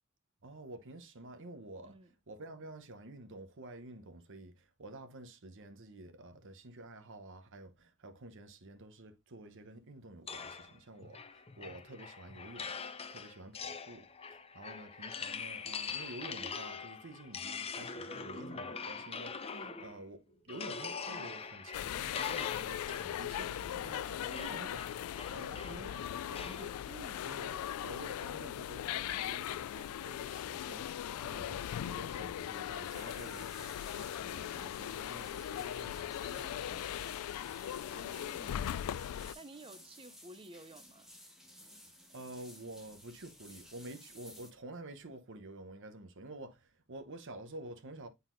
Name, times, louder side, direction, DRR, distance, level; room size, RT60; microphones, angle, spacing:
voice 1, 0.4-2.0 2.3-19.5 19.8-24.8 25.3-26.8 27.2-30.9 31.2-37.0 42.1-48.1, right 2 dB, 60° right, 0.9 m, -50 dB
sound 1, 10.3-20.1 20.5-26.7, left 5 dB, 25° left, 0.6 m, -43 dB
voice 2, 19.5-19.8 24.4-24.7 26.9-27.4 37.9-38.6 39.3-41.1, right 2 dB, 25° right, 0.5 m, -52 dB
sound 2, 21.7-39.3, left 10 dB, 75° left, 0.3 m, -39 dB
sound 3, 32.6-44.5, equal, ahead, 1.1 m, -56 dB
9.0 x 4.0 x 2.6 m
head